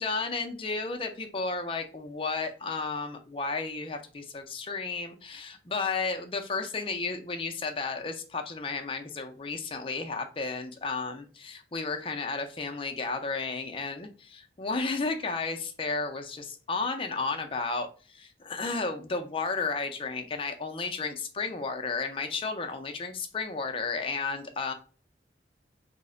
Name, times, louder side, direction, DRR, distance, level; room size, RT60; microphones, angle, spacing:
voice 1, 0.0-24.7, left 4 dB, 30° left, 5 dB, 0.4 m, -33 dB
3.2 x 2.1 x 3.7 m, 0.38 s
head